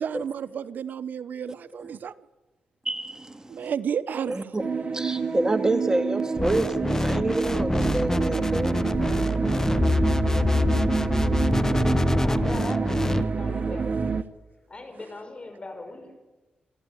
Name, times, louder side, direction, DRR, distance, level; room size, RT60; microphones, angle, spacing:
voice 1, 0.0-2.1 3.5-4.5, right 8 dB, 70° right, 0.8 m, -31 dB
voice 2, 2.9-3.7 4.3-8.9, right 2 dB, 20° right, 2.1 m, -28 dB
sound 1, 4.6-14.2, right 4 dB, 45° right, 1.2 m, -27 dB
sound 2, 6.4-13.2, left 2 dB, 15° left, 0.8 m, -25 dB
voice 3, 12.2-14.0 14.7-16.1, left 2 dB, 35° left, 6.1 m, -41 dB
26.0 x 13.5 x 10.0 m
cardioid pair, 60°, 3 cm